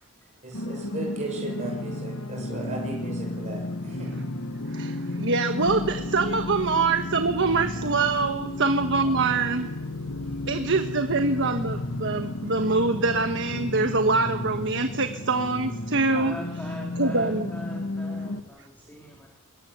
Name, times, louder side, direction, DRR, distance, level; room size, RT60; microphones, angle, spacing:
voice 1, 0.4-4.1 6.7-6.9, right 2 dB, 35° right, -1 dB, 5.9 m, -36 dB
sound 1, 0.5-18.4, left 2 dB, 85° left, 1.8 m, -33 dB
voice 2, 4.6-9.7 10.5-16.4 16.9-17.5, right 3 dB, 60° right, 7 dB, 1.3 m, -24 dB
voice 3, 16.1-19.3, equal, 10° left, -1 dB, 4.1 m, -41 dB
23.0 x 21.0 x 9.6 m, 1.1 s
head